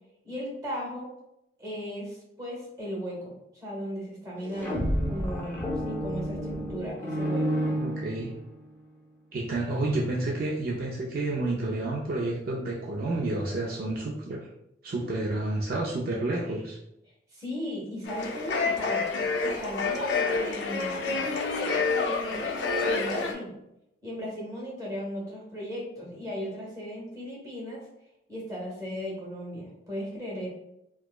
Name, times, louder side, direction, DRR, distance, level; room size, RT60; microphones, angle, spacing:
voice 1, 0.2-1.1 1.6-5.6 5.8-7.5 17.3-19.0 19.4-21.0 21.8-23.5 24.0-27.8 28.3-30.5, equal, 20° right, -5 dB, 1.1 m, -36 dB
sound 1, 4.4-8.6, equal, 10° left, 0.6 m, -30 dB
voice 2, 7.7-8.3 9.3-14.4 14.8-16.8, right 2 dB, 55° right, -3 dB, 0.4 m, -30 dB
sound 2, 18.1-23.3, left 4 dB, 80° left, 0.5 m, -28 dB
4.4 x 2.0 x 2.2 m, 0.85 s
head